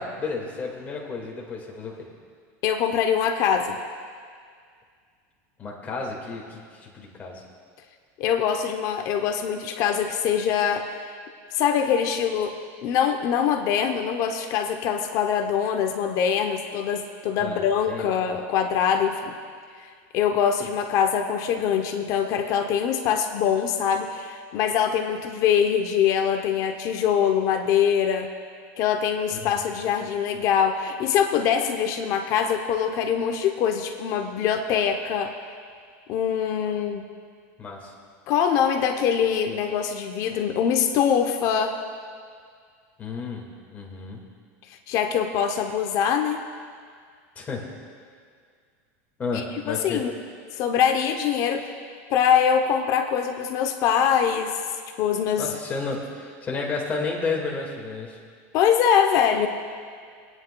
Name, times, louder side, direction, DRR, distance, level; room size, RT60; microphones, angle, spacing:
voice 1, 0.0-2.0 5.6-7.4 17.4-17.6 17.9-18.1 29.3-29.5 37.6-37.9 43.0-44.2 47.4-47.7 49.2-50.1 55.4-58.2, left 4 dB, 20° left, -2 dB, 1.8 m, -32 dB
voice 2, 2.6-3.8 8.2-11.1 11.5-12.5 12.8-19.4 20.1-28.3 28.8-35.3 36.1-37.1 38.3-41.8 44.9-46.4 49.3-50.1 50.5-51.7 52.1-54.5 55.0-55.5 58.5-59.5, left 8 dB, 45° left, 6 dB, 0.7 m, -23 dB
25.0 x 9.7 x 2.3 m, 2.1 s
supercardioid pair, 150°, 8 cm